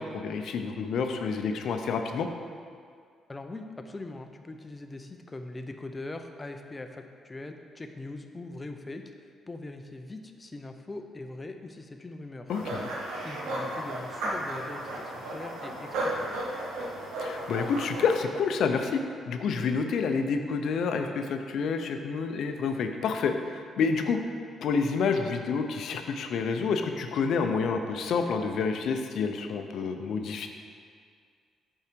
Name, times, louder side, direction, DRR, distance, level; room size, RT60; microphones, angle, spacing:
voice 1, 0.0-2.3 12.5-12.9 17.2-24.2 24.6-30.5, left 5 dB, 70° left, 6 dB, 0.5 m, -28 dB
voice 2, 3.3-9.0 9.5-12.5 13.2-16.6, left 2 dB, 20° left, 5 dB, 0.5 m, -41 dB
sound 1, 12.5-18.2, right 1 dB, 85° right, 1.0 m, -34 dB
5.7 x 4.6 x 5.2 m, 2.1 s
cardioid pair, 90°, 0 cm